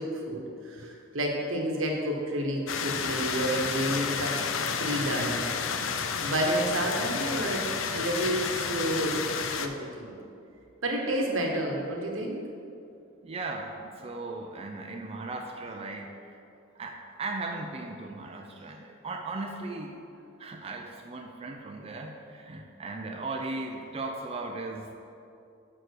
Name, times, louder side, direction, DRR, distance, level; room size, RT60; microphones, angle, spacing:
voice 1, 0.0-4.4 4.8-5.5 6.2-9.2 9.6-10.1 10.8-12.4, right 1 dB, 90° right, 1 dB, 1.2 m, -30 dB
sound 1, 2.7-9.7, left 6 dB, 80° left, 0.5 m, -31 dB
voice 2, 13.2-16.4 16.8-20.0 20.4-25.0, right 3 dB, 30° right, 2 dB, 0.4 m, -37 dB
6.0 x 4.6 x 6.5 m, 2.6 s
head